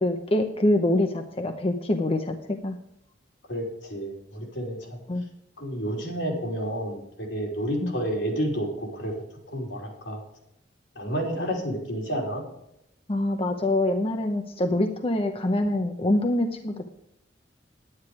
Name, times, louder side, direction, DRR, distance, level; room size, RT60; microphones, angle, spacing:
voice 1, 0.0-2.4 2.6-2.8 5.1-5.2 7.8-7.9 13.1-16.9, left 1 dB, 30° left, 5 dB, 0.8 m, -25 dB
voice 2, 3.5-5.0 5.6-9.1 9.5-10.2 10.9-12.4, equal, 75° left, 0 dB, 3.4 m, -30 dB
10.5 x 9.7 x 4.8 m, 0.82 s
head